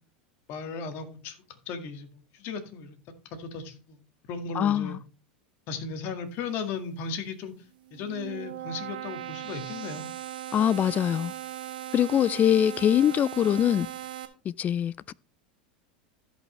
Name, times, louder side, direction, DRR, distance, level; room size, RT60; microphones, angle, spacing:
voice 1, 0.5-3.0 3.3-4.0 4.3-5.0 5.7-7.5 7.9-10.1, left 5 dB, 50° left, 1.9 m, -36 dB
voice 2, 4.5-5.0 10.5-11.3 11.9-13.9 14.4-15.1, left 10 dB, 35° left, 0.4 m, -23 dB
sound 1, 7.8-14.3, right 12 dB, 85° right, 1.6 m, -38 dB
16.0 x 5.4 x 3.2 m
hypercardioid pair, 105°, 5 cm